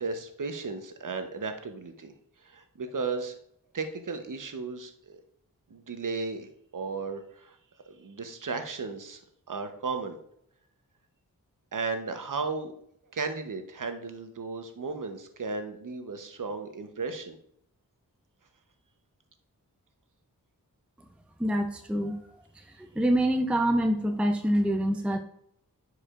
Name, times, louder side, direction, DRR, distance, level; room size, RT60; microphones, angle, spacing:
voice 1, 0.0-2.1 2.4-3.3 3.7-5.2 5.7-7.6 7.9-9.2 9.5-10.2 11.7-12.7 13.1-17.4, right 4 dB, 55° right, 7 dB, 0.9 m, -35 dB
voice 2, 21.4-22.2 22.8-25.2, right 1 dB, 5° right, 5 dB, 0.6 m, -25 dB
9.7 x 4.9 x 2.5 m, 0.68 s
cardioid pair, 40°, 37 cm